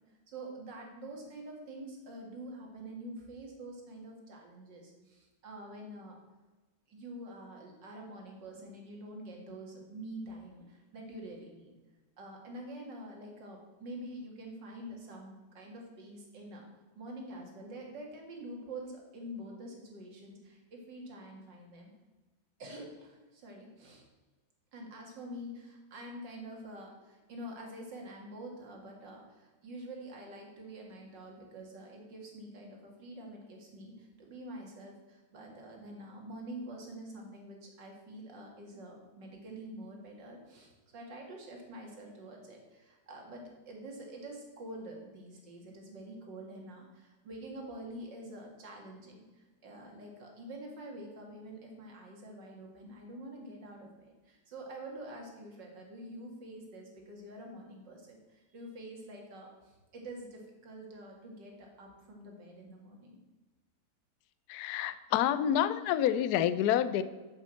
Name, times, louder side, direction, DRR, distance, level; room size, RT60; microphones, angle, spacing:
voice 1, 0.3-6.2 6.9-11.7 12.2-16.6 17.0-21.9 22.6-24.0 24.7-63.2, right 1 dB, 60° right, 0 dB, 2.7 m, -46 dB
voice 2, 64.5-67.0, left 10 dB, 75° left, 13 dB, 0.9 m, -28 dB
7.4 x 7.4 x 7.7 m, 1.2 s
omnidirectional pair, 2.2 m